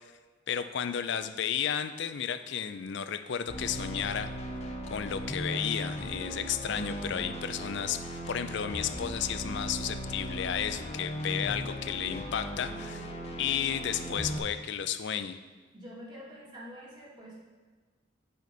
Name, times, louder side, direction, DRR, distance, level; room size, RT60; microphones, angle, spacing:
voice 1, 0.5-4.3 4.9-12.9 13.4-15.4, left 8 dB, 65° left, 11 dB, 0.4 m, -33 dB
sound 1, 3.5-14.4, equal, 35° left, 1.1 m, -37 dB
voice 2, 12.7-13.3 15.7-17.4, equal, 25° right, -6 dB, 2.2 m, -47 dB
9.3 x 5.1 x 3.9 m, 1.4 s
head